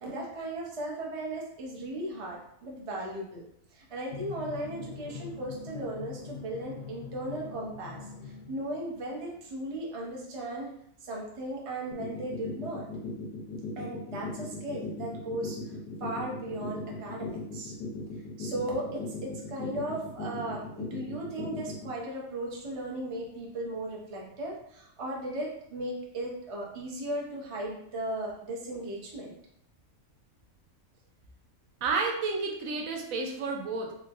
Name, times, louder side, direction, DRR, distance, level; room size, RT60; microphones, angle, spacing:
voice 1, 0.0-3.4 3.7-8.0 8.5-10.7 11.0-12.9 13.8-15.6 16.0-17.7 18.4-29.3, right 1 dB, 40° right, -2 dB, 0.5 m, -36 dB
Drum, 4.1-9.2, left 6 dB, 65° left, 0.7 m, -43 dB
sound 1, 11.9-21.9, left 4 dB, 90° left, 1.2 m, -38 dB
voice 2, 31.8-33.9, right 4 dB, 75° right, 1 dB, 1.0 m, -31 dB
3.4 x 3.0 x 2.3 m, 0.71 s
omnidirectional pair, 1.5 m